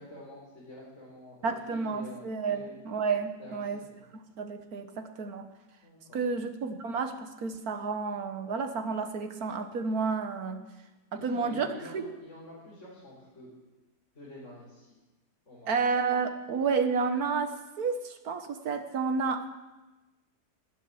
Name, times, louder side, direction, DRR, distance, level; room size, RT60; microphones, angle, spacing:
voice 1, 0.0-2.2 2.5-2.8 3.4-4.0 5.8-6.3 11.1-13.5 14.1-14.9 15.5-15.9, left 1 dB, 50° left, -7 dB, 4.8 m, -47 dB
voice 2, 1.4-3.8 4.4-5.5 6.1-10.6 11.1-11.7 11.9-12.0 15.7-19.5, right 5 dB, 70° right, 7 dB, 1.8 m, -31 dB
12.5 x 12.0 x 9.6 m, 1.1 s
omnidirectional pair, 1.7 m